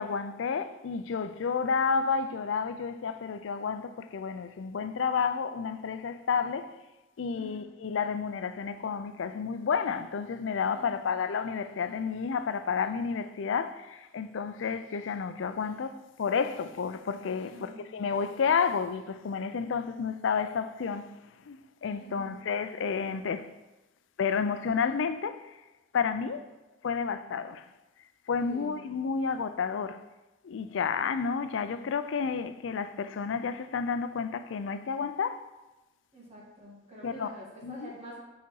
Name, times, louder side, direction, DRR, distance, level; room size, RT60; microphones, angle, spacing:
voice 1, 0.0-6.7 7.2-21.1 21.5-23.5 24.2-25.6 25.9-26.5 26.8-27.7 28.3-30.0 30.4-35.4 37.0-37.3 37.6-37.9, left 6 dB, 70° left, 0.4 m, -31 dB
voice 2, 7.3-7.6 10.7-11.0 17.4-18.0 22.0-22.4 28.4-28.9 36.1-38.2, equal, 35° right, 2.0 m, -47 dB
7.0 x 4.1 x 4.6 m
head